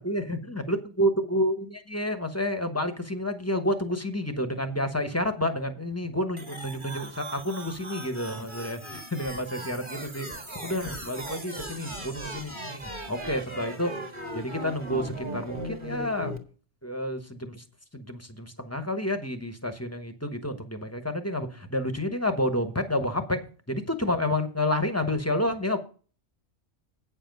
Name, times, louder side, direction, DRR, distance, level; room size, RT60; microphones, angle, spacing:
voice 1, 0.0-10.3 10.6-13.9 14.3-16.3 16.8-17.6 17.9-23.4 23.7-25.8, left 1 dB, 15° left, 8 dB, 0.9 m, -29 dB
sound 1, 6.4-16.4, right 1 dB, 25° right, 1.5 m, -38 dB
8.7 x 7.1 x 5.2 m, 0.38 s
omnidirectional pair, 1.2 m